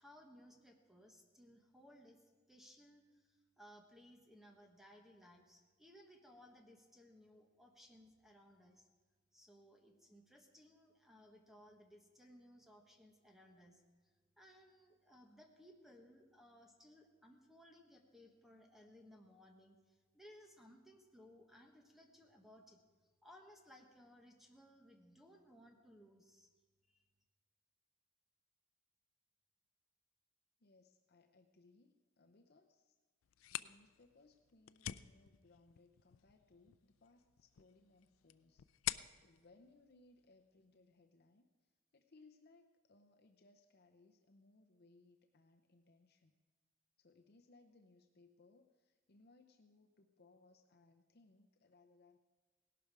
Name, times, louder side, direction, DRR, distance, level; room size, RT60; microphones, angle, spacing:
voice 1, 0.0-2.2 2.5-8.9 9.3-13.8 14.4-22.8 23.2-26.5 26.9-27.0, equal, ahead, 3 dB, 1.3 m, -62 dB
voice 2, 30.6-33.0 33.5-38.7 39.2-41.5 41.9-46.3 47.0-52.2, left 3 dB, 50° left, 4 dB, 0.7 m, -67 dB
sound 1, 33.2-40.8, left 13 dB, 85° left, 0.4 m, -49 dB
17.5 x 12.0 x 4.8 m, 1.4 s
head